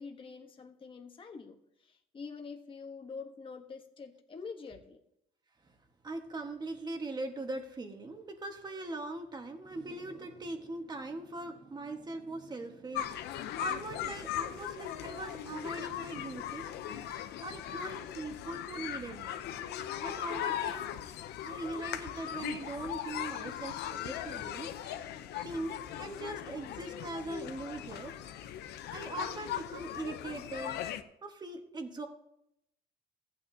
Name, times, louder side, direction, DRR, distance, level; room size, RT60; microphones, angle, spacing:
voice 1, 0.0-5.0 20.7-20.8 23.8-24.0, left 5 dB, 30° left, 3 dB, 1.2 m, -46 dB
voice 2, 6.0-16.9 17.4-19.3 20.0-20.9 21.4-24.9 25.3-28.1 28.9-30.8 31.2-32.1, right 2 dB, 25° right, 5 dB, 1.6 m, -41 dB
sound 1, 12.9-31.0, left 11 dB, 80° left, 0.8 m, -39 dB
15.0 x 8.9 x 2.8 m, 0.76 s
cardioid pair, 110°, 17 cm